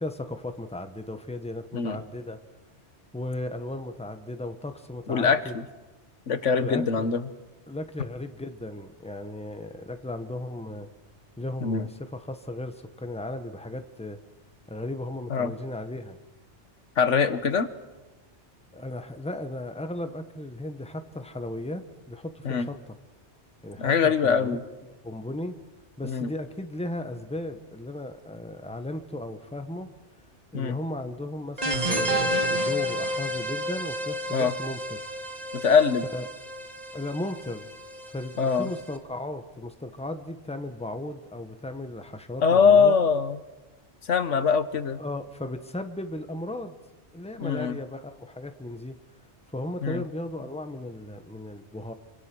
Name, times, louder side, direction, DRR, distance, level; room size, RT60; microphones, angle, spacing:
voice 1, 0.0-2.4 3.1-5.6 6.5-7.1 7.7-10.9 11.4-14.2 14.7-16.2 18.7-23.0 23.6-25.5 26.0-29.9 30.5-35.1 36.1-36.3 36.9-37.7 38.0-43.0 45.0-46.7 47.1-49.0 49.5-51.9, left 1 dB, 5° left, 7 dB, 1.4 m, -36 dB
voice 2, 5.1-5.6 6.3-7.2 11.6-11.8 15.3-15.5 17.0-17.7 22.4-22.7 23.8-24.6 26.0-26.3 30.5-30.8 34.3-34.5 35.5-36.0 38.4-38.7 42.4-43.4 44.1-45.0 47.4-47.8 49.8-50.0, left 6 dB, 90° left, 11 dB, 1.6 m, -22 dB
sound 1, 31.6-38.9, equal, 35° right, 2.0 m, -30 dB
28.0 x 25.0 x 6.2 m, 1.1 s
omnidirectional pair, 1.2 m